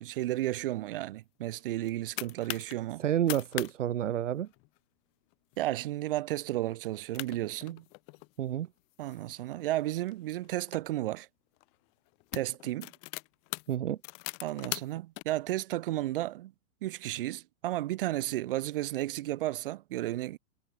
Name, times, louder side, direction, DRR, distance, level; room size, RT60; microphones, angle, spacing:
voice 1, 0.0-3.0 5.6-7.8 9.0-11.3 12.3-12.9 14.4-16.5 16.8-20.4, right 15 dB, 40° right, 7.0 m, -33 dB
sound 1, 1.6-2.8 3.1-3.7 4.0-4.1 4.4-4.8 5.3-5.6 6.0-6.1 6.8-6.9 7.1-8.3 8.9-10.8 11.6-11.8 12.1-15.2, left 34 dB, 15° left, 0.9 m, -41 dB
voice 2, 3.0-4.5 8.4-8.7 13.7-14.0, right 11 dB, 55° right, 3.9 m, -29 dB
hypercardioid pair, 175°, 43 cm